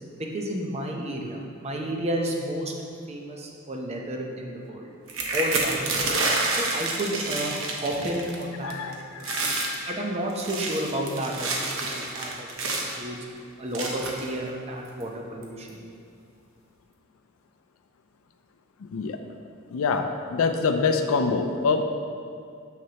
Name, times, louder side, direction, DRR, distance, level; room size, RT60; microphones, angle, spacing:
voice 1, 0.2-2.7 3.1-4.9 5.3-6.2 6.5-9.6 9.9-13.2 13.6-15.8, right 1 dB, 30° right, 0 dB, 0.7 m, -31 dB
sound 1, 5.1-8.4 8.7-8.9 9.2-9.8 10.3-13.0 13.7-14.3 15.0-15.1 15.4-15.7, right 2 dB, 70° right, 0.9 m, -28 dB
voice 2, 8.6-8.9 9.2-9.9 18.9-19.2 19.7-21.8, left 4 dB, 80° left, 6 dB, 0.4 m, -25 dB
6.5 x 6.3 x 2.9 m, 2.3 s
head